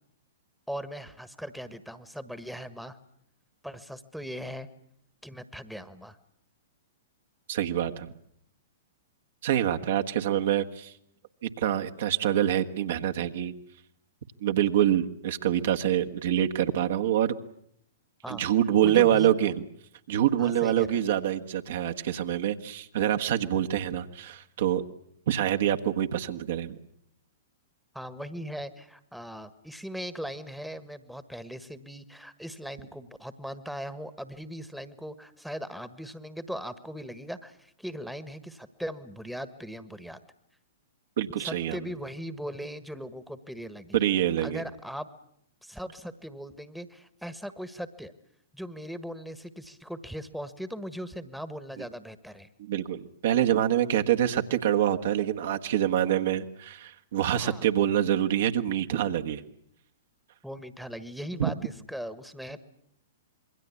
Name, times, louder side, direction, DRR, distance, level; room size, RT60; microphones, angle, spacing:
voice 1, 0.7-3.0 3.6-4.7 5.2-6.2 18.2-18.4 18.8-19.3 20.4-21.0 27.9-40.2 41.4-44.0 44.4-45.1 45.6-48.1 48.5-52.5 57.3-57.7 60.4-62.6, equal, ahead, 13 dB, 1.5 m, -39 dB
voice 2, 7.5-8.1 9.4-10.9 11.4-13.5 14.4-17.3 18.3-19.6 20.1-24.8 25.3-26.8 41.2-41.8 43.9-44.6 52.6-59.4 61.4-61.5, right 11 dB, 60° right, 6 dB, 1.5 m, -26 dB
27.0 x 22.5 x 8.4 m, 0.70 s
figure-of-eight pair, 110°, 0 cm